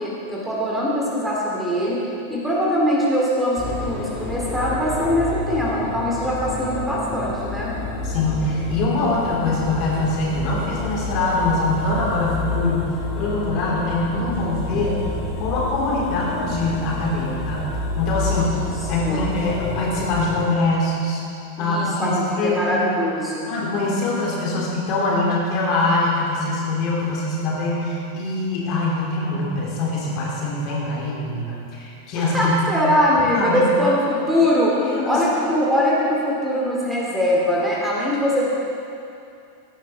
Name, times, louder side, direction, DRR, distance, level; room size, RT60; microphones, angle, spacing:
voice 1, 0.0-2.0 2.3-7.7 18.3-18.7 19.0-19.3 21.6-23.5 32.2-34.8 35.0-38.4, equal, 5° right, -6 dB, 2.7 m, -22 dB
sound 1, 3.6-20.5, left 3 dB, 20° left, 2.6 m, -29 dB
voice 2, 8.0-15.0 15.4-17.6 18.0-18.5 18.9-21.2 21.6-22.9 23.5-32.5 33.2-33.6 34.8-35.2, left 2 dB, 40° left, -4 dB, 3.3 m, -23 dB
16.5 x 11.0 x 3.6 m, 2.6 s
figure-of-eight pair, 90°, 0 cm